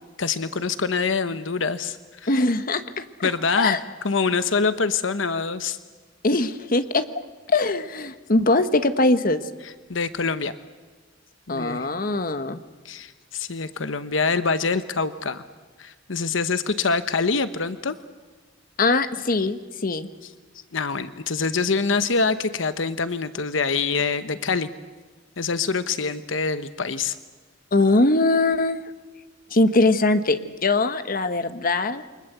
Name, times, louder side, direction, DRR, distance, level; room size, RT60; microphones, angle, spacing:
voice 1, 0.2-2.4 3.2-3.8 4.0-5.8 9.9-10.5 11.5-11.9 12.8-15.4 15.8-18.0 20.7-24.7 25.4-27.1, left 4 dB, 80° left, 12 dB, 1.0 m, -25 dB
voice 2, 2.3-3.3 3.6-3.8 6.2-7.0 7.5-9.4 11.5-12.6 18.8-20.1 27.7-28.8 29.5-32.0, left 2 dB, 50° left, 10 dB, 1.2 m, -21 dB
28.5 x 24.5 x 8.0 m, 1.3 s
head